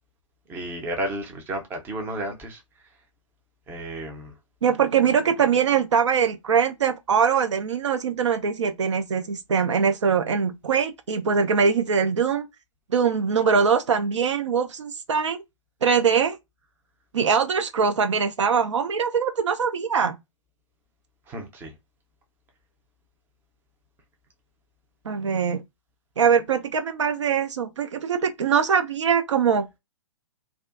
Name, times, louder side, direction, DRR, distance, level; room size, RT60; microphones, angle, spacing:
voice 1, 0.5-2.6 3.7-4.3 21.3-21.7, right 1 dB, 10° right, 0.5 m, -32 dB
voice 2, 4.6-12.5 12.9-15.4 15.8-16.4 17.1-20.1 25.1-25.6 26.2-29.7, right 6 dB, 65° right, 0.4 m, -22 dB
2.4 x 2.3 x 2.3 m
figure-of-eight pair, 120°, 16 cm